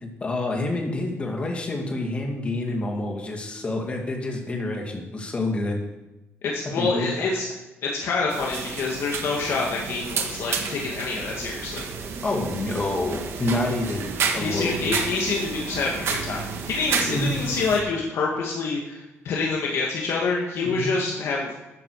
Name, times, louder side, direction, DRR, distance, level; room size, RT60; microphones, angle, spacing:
voice 1, 0.0-5.8 6.8-7.3 12.2-15.0 17.0-17.4 20.6-20.9, left 2 dB, 25° left, 1 dB, 2.3 m, -28 dB
voice 2, 6.4-7.5 7.8-11.8 14.4-21.5, left 4 dB, 65° left, -2 dB, 2.2 m, -27 dB
sound 1, 8.3-17.8, right 5 dB, 60° right, 1.8 m, -31 dB
13.0 x 9.8 x 4.9 m, 1.0 s
cardioid pair, 165°, 5 cm